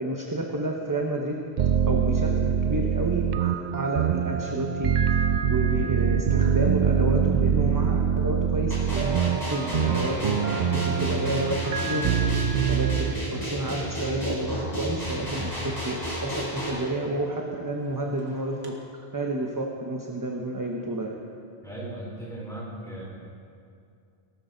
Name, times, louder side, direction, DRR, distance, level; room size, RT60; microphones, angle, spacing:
voice 1, 0.0-1.3 1.9-5.1 5.5-12.2 12.7-21.2, right 1 dB, 20° right, 0 dB, 0.9 m, -30 dB
sound 1, 1.6-13.1, right 7 dB, 55° right, 0.6 m, -24 dB
sound 2, 8.7-16.7, equal, 20° left, 3.8 m, -32 dB
sound 3, 9.4-18.7, equal, 80° right, 2.0 m, -43 dB
voice 2, 21.6-23.0, right 1 dB, 5° left, -6 dB, 4.3 m, -37 dB
18.0 x 12.5 x 3.9 m, 2.4 s
omnidirectional pair, 1.1 m